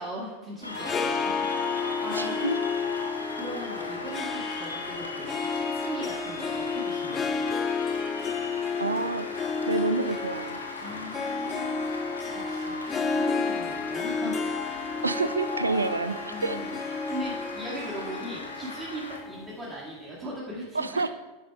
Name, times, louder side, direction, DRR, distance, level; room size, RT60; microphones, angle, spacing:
voice 1, 0.0-2.6 3.3-7.6 10.8-14.4 16.3-21.1, equal, 25° right, -5 dB, 1.9 m, -39 dB
Cheering / Applause, 0.6-19.2, left 2 dB, 85° left, 1.1 m, -38 dB
Harp, 0.6-20.0, left 5 dB, 20° left, 0.5 m, -32 dB
voice 2, 2.1-2.6 8.8-9.3 9.7-10.6 15.0-16.6 20.7-21.1, right 3 dB, 80° right, 13 dB, 0.3 m, -28 dB
10.0 x 5.4 x 3.4 m, 1.2 s
figure-of-eight pair, 90°, 0 cm